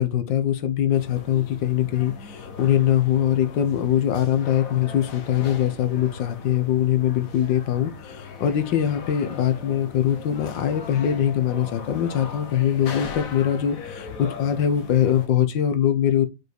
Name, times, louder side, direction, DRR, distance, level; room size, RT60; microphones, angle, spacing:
voice 1, 0.0-16.3, left 10 dB, 80° left, 1.6 m, -22 dB
sound 1, 0.9-15.3, left 5 dB, 55° left, 1.3 m, -39 dB
5.3 x 4.7 x 4.6 m
omnidirectional pair, 2.0 m